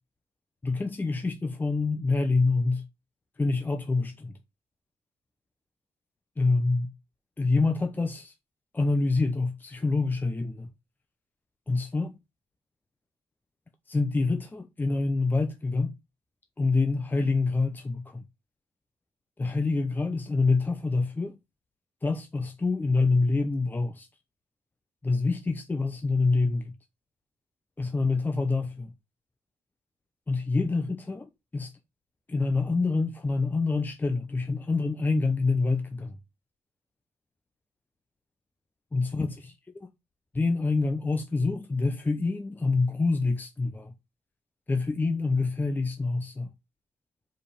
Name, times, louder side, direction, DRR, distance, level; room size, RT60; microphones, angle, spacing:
voice 1, 0.6-2.9 3.4-4.3 6.4-6.9 7.4-8.3 8.7-10.7 11.7-12.1 13.9-15.9 16.6-18.2 19.4-21.4 22.0-24.1 25.0-26.7 27.8-28.9 30.3-31.7 32.3-36.2 38.9-39.5 40.3-43.9 44.7-46.5, left 3 dB, 15° left, 0.7 m, -26 dB
5.2 x 5.0 x 5.5 m
cardioid pair, 135°, 11 cm